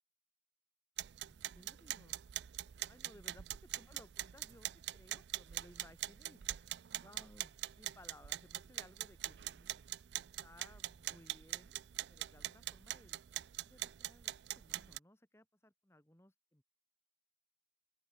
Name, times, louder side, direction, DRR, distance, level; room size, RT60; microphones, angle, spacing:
sound 1, 1.0-15.0, right 14 dB, 75° right, 0.4 m, -44 dB
voice 1, 1.2-2.2 2.9-11.8 12.1-16.6, left 1 dB, 15° left, 2.2 m, -62 dB
open air
head